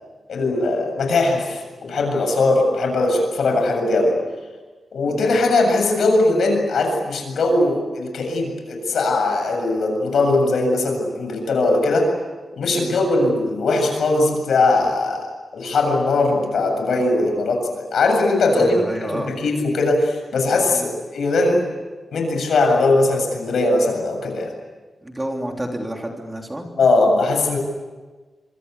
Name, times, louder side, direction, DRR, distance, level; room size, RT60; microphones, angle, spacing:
voice 1, 0.3-4.1 4.9-12.1 12.5-15.3 15.5-20.9 21.1-21.6 22.1-24.5 26.8-27.6, left 2 dB, 75° left, 3 dB, 7.4 m, -20 dB
voice 2, 5.0-5.3 12.7-13.0 18.5-19.3 20.6-20.9 25.0-26.6, right 1 dB, 10° right, 2 dB, 3.2 m, -30 dB
26.5 x 24.5 x 8.3 m, 1.3 s
wide cardioid pair, 165°, 0 cm